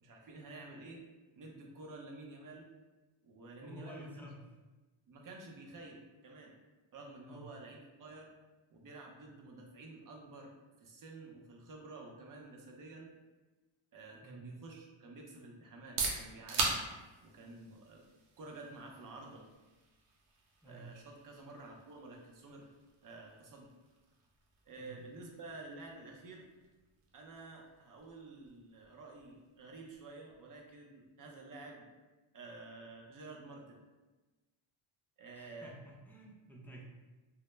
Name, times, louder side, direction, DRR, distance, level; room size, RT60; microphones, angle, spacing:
voice 1, 0.0-1.0 1.4-2.7 3.2-4.3 5.1-6.6 6.9-8.3 8.7-13.1 13.9-16.8 17.2-18.0 18.4-19.5 20.6-22.7 23.0-23.7 24.7-26.5 27.1-31.9 32.3-33.8 35.2-35.7, right 2 dB, 40° right, 0 dB, 0.6 m, -50 dB
voice 2, 3.6-4.4 7.3-7.5 14.2-14.5 20.6-20.9 24.7-25.0 35.3-36.8, equal, 5° left, -2 dB, 0.4 m, -51 dB
sound 1, 15.7-31.3, right 3 dB, 80° right, 0.7 m, -44 dB
2.0 x 2.0 x 3.2 m, 1.2 s
cardioid pair, 80°, 50 cm